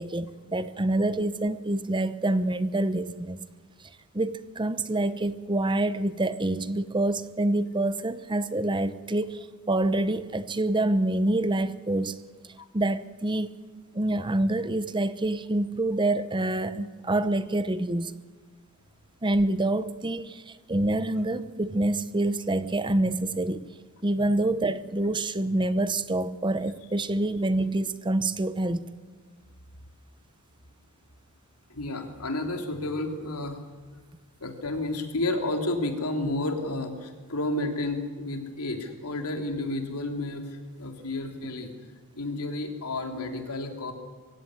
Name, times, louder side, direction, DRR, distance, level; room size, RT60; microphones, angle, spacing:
voice 1, 0.0-3.4 4.1-12.2 12.7-13.5 13.9-18.1 19.2-23.6 24.0-28.9, right 2 dB, 20° right, 13 dB, 0.8 m, -26 dB
voice 2, 31.7-33.6 34.4-41.7 42.1-43.9, left 2 dB, 90° left, 4 dB, 3.2 m, -31 dB
24.0 x 16.0 x 9.7 m, 1.4 s
head